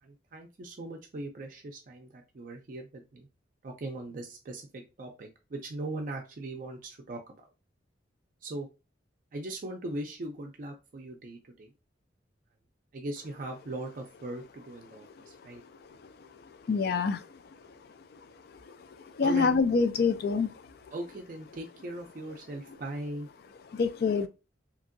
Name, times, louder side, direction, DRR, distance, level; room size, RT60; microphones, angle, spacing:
voice 1, 0.0-3.3 3.6-7.5 8.4-8.7 9.3-11.7 12.9-15.6 19.2-19.5 20.9-23.3, right 2 dB, 45° right, 0.4 m, -39 dB
voice 2, 16.7-17.3 19.1-20.5 23.7-24.3, left 4 dB, 55° left, 0.3 m, -25 dB
2.9 x 2.6 x 2.5 m
head